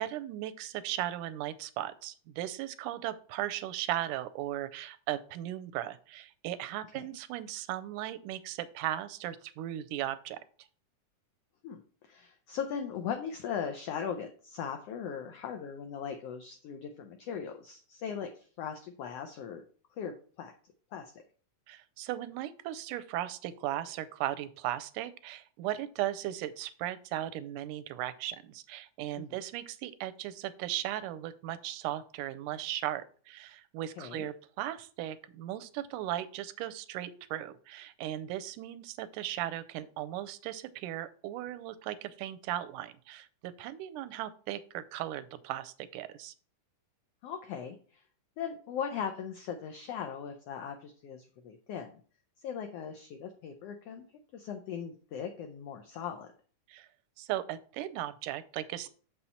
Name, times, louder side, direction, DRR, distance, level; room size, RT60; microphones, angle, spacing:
voice 1, 0.0-10.4 21.7-46.3 56.7-56.9 57.2-58.9, right 13 dB, 85° right, 14 dB, 2.1 m, -37 dB
voice 2, 11.6-19.6 20.0-20.5 20.9-21.2 29.2-29.4 34.0-34.3 47.2-48.0 48.4-51.9 52.4-54.0 54.3-56.3, left 7 dB, 80° left, 6 dB, 1.4 m, -39 dB
6.6 x 5.6 x 4.3 m, 0.42 s
omnidirectional pair, 3.6 m